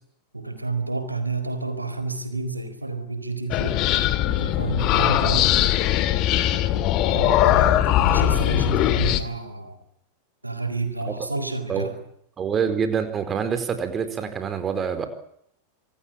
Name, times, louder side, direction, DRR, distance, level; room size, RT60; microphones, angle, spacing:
voice 1, 0.3-3.8 4.3-6.0 7.1-9.8 10.4-12.0, right 3 dB, 85° right, 10 dB, 4.2 m, -30 dB
sound 1, 3.5-9.2, left 12 dB, 40° left, 2.3 m, -20 dB
voice 2, 12.4-15.1, right 6 dB, 25° right, 9 dB, 4.4 m, -26 dB
26.5 x 19.0 x 8.9 m, 0.73 s
figure-of-eight pair, 90°, 0 cm